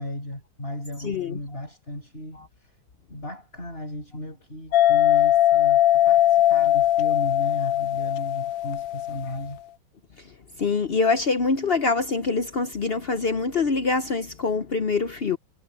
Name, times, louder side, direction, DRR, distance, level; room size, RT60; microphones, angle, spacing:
voice 1, 0.0-2.8 3.1-9.6, left 1 dB, 30° left, 6.2 m, -35 dB
voice 2, 1.0-1.4 2.4-2.5 10.2-10.3 10.6-15.4, left 4 dB, 55° left, 0.6 m, -24 dB
sound 1, 4.7-9.5, left 13 dB, 80° left, 1.4 m, -20 dB
omnidirectional pair, 2.0 m